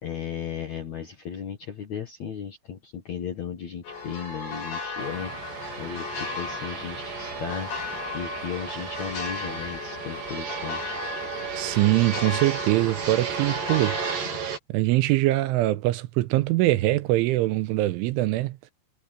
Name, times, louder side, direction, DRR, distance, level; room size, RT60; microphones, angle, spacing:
voice 1, 0.0-11.0, left 7 dB, 60° left, 1.9 m, -36 dB
sound 1, 3.8-14.2, left 3 dB, 75° left, 9.9 m, -35 dB
Fixed-wing aircraft airplane, 5.0-14.6, right 6 dB, 45° right, 5.0 m, -35 dB
voice 2, 11.6-14.0 14.7-18.6, right 17 dB, 85° right, 3.1 m, -23 dB
omnidirectional pair, 5.8 m